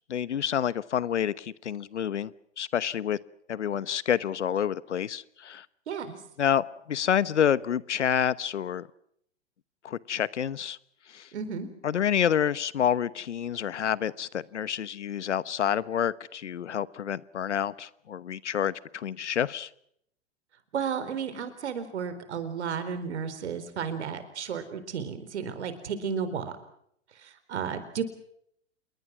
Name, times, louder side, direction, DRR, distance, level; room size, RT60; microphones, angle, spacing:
voice 1, 0.1-3.2 3.5-5.7 6.4-8.9 9.8-10.8 11.1-11.3 11.8-19.7, left 9 dB, 80° left, 19 dB, 1.1 m, -28 dB
voice 2, 5.9-6.2 11.3-11.7 20.7-26.5 27.2-28.0, right 7 dB, 70° right, 11 dB, 4.2 m, -33 dB
28.0 x 22.0 x 6.1 m, 0.72 s
hypercardioid pair, 110°, 35 cm